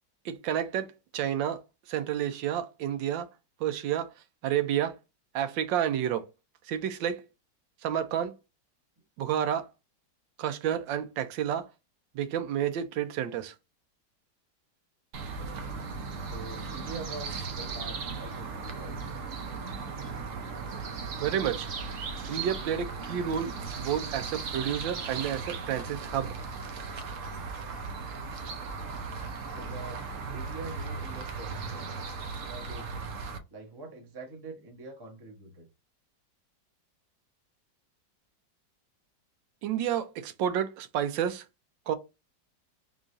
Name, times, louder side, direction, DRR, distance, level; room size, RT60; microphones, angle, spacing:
voice 1, 0.2-1.6 1.9-3.3 3.6-4.1 4.4-4.9 5.3-6.3 6.6-7.2 7.8-8.3 9.2-9.7 10.4-11.7 12.1-13.5 21.2-21.7 22.3-26.3 39.6-41.4 41.9-42.0, right 9 dB, 85° right, 1.3 m, -30 dB
sound 1, 15.1-33.4, right 4 dB, 65° right, 0.8 m, -37 dB
voice 2, 16.2-19.0 29.4-30.0 30.3-31.6 32.4-33.1 33.5-35.7, right 3 dB, 25° right, 0.5 m, -44 dB
3.8 x 3.0 x 2.6 m
omnidirectional pair, 2.0 m